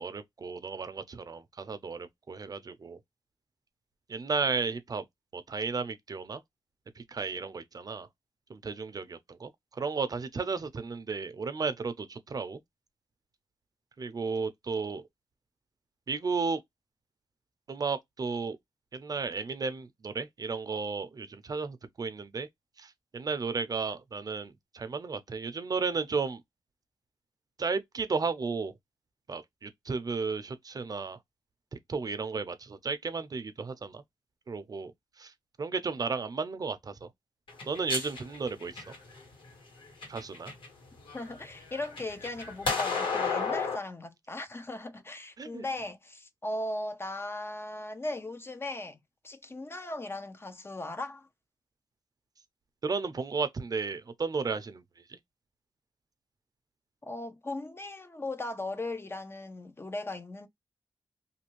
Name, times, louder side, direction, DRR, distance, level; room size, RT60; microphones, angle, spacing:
voice 1, 0.0-3.0 4.1-5.0 5.3-6.4 7.0-8.1 8.5-12.6 14.0-15.0 16.1-16.6 17.7-18.6 18.9-22.5 22.8-26.4 27.6-28.7 29.3-31.2 31.9-34.0 34.5-34.9 35.2-35.3 35.6-37.1 37.7-38.9 40.1-40.5 45.4-45.6 52.8-54.8 55.1-55.2, right 4 dB, 50° right, 0.5 m, -34 dB
sound 1, 37.5-39.2 39.8-40.7 41.1-43.8, left 4 dB, 85° left, 1.7 m, -32 dB
voice 2, 41.1-49.0 49.2-51.3 57.0-60.5, left 2 dB, 30° left, 0.6 m, -38 dB
2.7 x 2.5 x 2.9 m
cardioid pair, 70°, 8 cm